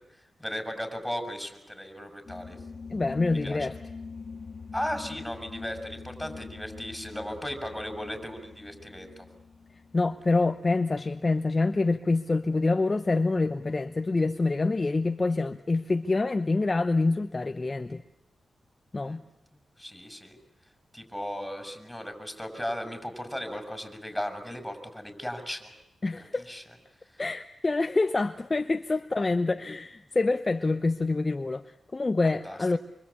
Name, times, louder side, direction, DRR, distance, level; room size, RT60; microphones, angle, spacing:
voice 1, 0.1-2.6 3.4-3.7 4.7-9.3 19.0-19.2 19.8-20.4 20.9-25.7 26.5-26.6 32.2-32.8, equal, 5° left, 6 dB, 6.8 m, -36 dB
sound 1, 2.3-12.2, left 4 dB, 50° left, 1.9 m, -44 dB
voice 2, 2.9-3.7 9.9-18.0 18.9-19.2 26.0-26.5 27.2-32.8, left 3 dB, 35° left, 8 dB, 0.9 m, -26 dB
26.5 x 24.5 x 8.6 m, 0.87 s
cardioid pair, 60°, 0 cm